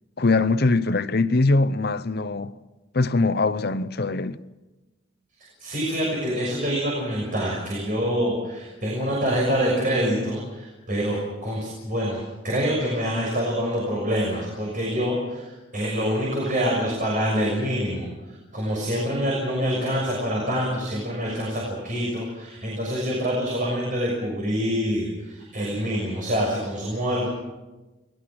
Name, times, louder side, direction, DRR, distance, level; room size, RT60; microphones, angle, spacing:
voice 1, 0.2-2.5 2.9-4.4, left 3 dB, 50° left, 0.8 m, -22 dB
voice 2, 5.4-27.3, equal, 40° right, 6.4 m, -26 dB
29.0 x 21.0 x 6.2 m
head